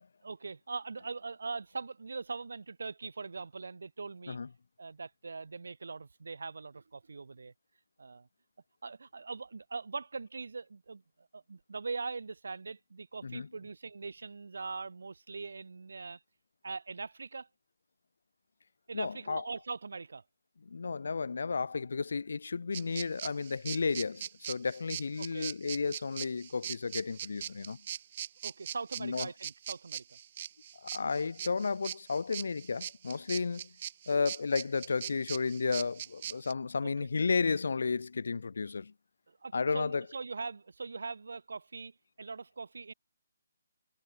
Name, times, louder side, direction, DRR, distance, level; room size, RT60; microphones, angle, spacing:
voice 1, 0.2-4.4 4.8-7.5 8.0-8.3 8.8-16.2 16.6-17.5 18.9-20.2 25.2-25.5 28.4-30.0 36.8-37.1 39.3-42.9, right 4 dB, 80° right, 3.7 m, -41 dB
voice 2, 18.9-19.5 20.7-27.8 29.0-29.3 30.8-33.7 34.1-38.9 39.5-40.0, left 4 dB, 65° left, 1.9 m, -33 dB
sound 1, 22.7-36.5, right 10 dB, 30° right, 5.3 m, -41 dB
hypercardioid pair, 175°, 0 cm